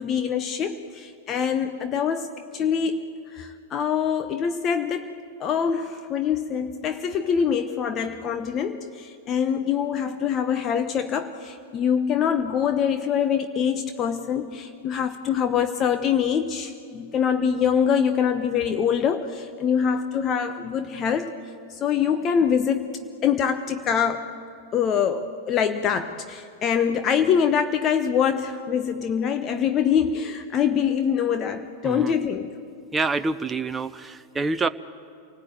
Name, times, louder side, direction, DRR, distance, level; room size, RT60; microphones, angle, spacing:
voice 1, 0.0-3.0 3.3-5.1 5.4-21.3 21.7-22.9 23.2-24.3 24.7-32.5, left 7 dB, 30° left, 8 dB, 1.0 m, -24 dB
voice 2, 32.9-34.7, right 3 dB, 15° right, 11 dB, 0.6 m, -26 dB
28.0 x 19.0 x 9.2 m, 2.4 s
figure-of-eight pair, 90°, 0 cm